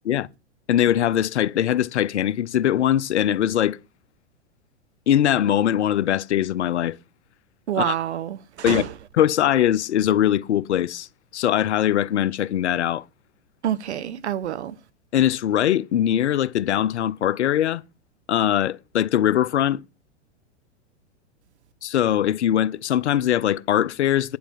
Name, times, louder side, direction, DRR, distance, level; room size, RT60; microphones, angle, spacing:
voice 1, 0.7-3.8 5.1-7.0 7.8-7.9 8.6-8.8 9.2-11.1 11.3-13.0 15.1-17.8 18.3-19.8 21.8-24.4, left 11 dB, 75° left, 0.8 m, -21 dB
voice 2, 7.7-8.9 13.6-14.8, right 10 dB, 70° right, 1.1 m, -27 dB
9.4 x 7.4 x 7.3 m
hypercardioid pair, 105°, 35 cm